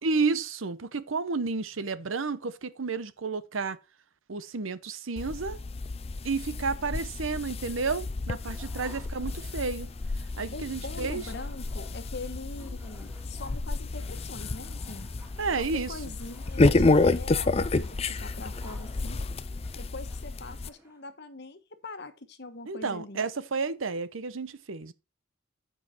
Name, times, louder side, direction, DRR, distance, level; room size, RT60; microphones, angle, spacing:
voice 1, 0.0-3.8 4.3-5.6 6.2-9.9 10.4-11.2 15.4-16.0 22.7-24.9, right 4 dB, 90° right, 0.8 m, -31 dB
sound 1, 5.2-20.7, left 3 dB, 30° left, 0.5 m, -30 dB
sound 2, 8.3-21.1, right 1 dB, 10° right, 2.4 m, -56 dB
voice 2, 10.5-15.1 15.6-19.2 19.8-23.2, left 3 dB, 55° left, 1.2 m, -43 dB
9.8 x 5.7 x 4.4 m
head